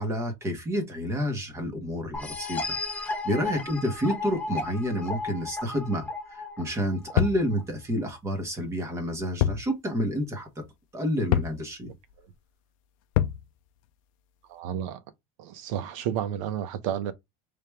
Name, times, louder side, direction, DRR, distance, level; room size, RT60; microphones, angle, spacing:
voice 1, 0.0-10.5 10.9-11.9, equal, 15° right, 1.2 m, -29 dB
sound 1, 2.1-7.6, left 3 dB, 10° left, 0.8 m, -34 dB
sound 2, 7.2-7.5 9.4-9.7 10.0-10.1 11.3-11.6 13.2-13.4, left 12 dB, 75° left, 0.5 m, -24 dB
voice 2, 14.5-15.0 15.4-17.1, right 9 dB, 75° right, 0.8 m, -31 dB
3.4 x 2.9 x 3.3 m
cardioid pair, 160°, 17 cm